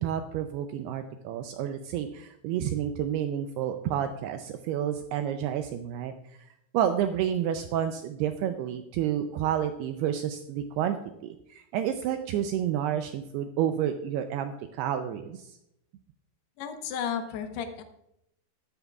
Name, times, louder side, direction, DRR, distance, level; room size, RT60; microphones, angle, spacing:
voice 1, 0.0-6.1 6.7-11.0 11.2-15.6, right 10 dB, 85° right, 7 dB, 2.3 m, -30 dB
voice 2, 16.6-17.8, left 8 dB, 70° left, 6 dB, 2.8 m, -33 dB
13.5 x 12.0 x 2.4 m, 0.79 s
omnidirectional pair, 5.2 m